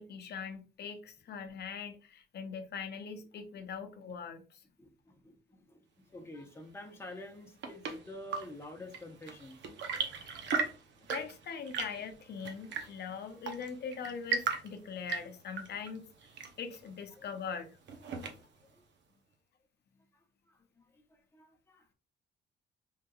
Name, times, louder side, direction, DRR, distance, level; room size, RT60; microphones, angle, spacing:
voice 1, 0.0-4.6 10.2-10.4 11.1-16.0 16.6-17.8, left 6 dB, 55° left, 0.6 m, -42 dB
voice 2, 4.8-9.6 17.1-17.3 20.5-21.9, left 1 dB, 10° left, 0.8 m, -49 dB
Chirp tweet / Engine / Tap, 7.2-18.7, right 5 dB, 65° right, 0.7 m, -39 dB
3.7 x 2.8 x 2.3 m
cardioid pair, 90°, 20 cm